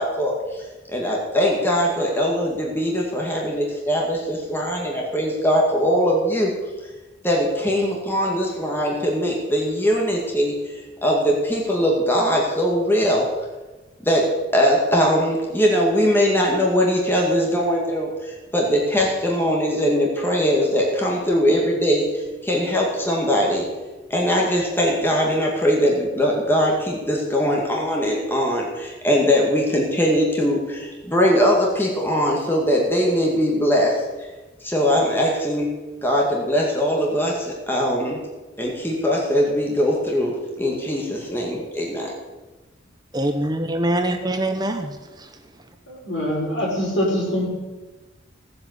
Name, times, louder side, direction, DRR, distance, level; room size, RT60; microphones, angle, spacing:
voice 1, 0.0-6.5 7.2-13.3 14.0-14.3 14.5-23.6 24.1-33.9 34.6-35.7 36.0-38.2 38.6-42.1, equal, 10° left, -2 dB, 2.1 m, -21 dB
voice 2, 43.1-45.3, right 1 dB, 20° right, 7 dB, 0.8 m, -24 dB
voice 3, 45.9-47.5, equal, 65° left, -3 dB, 6.1 m, -23 dB
16.5 x 7.8 x 8.1 m, 1.2 s
head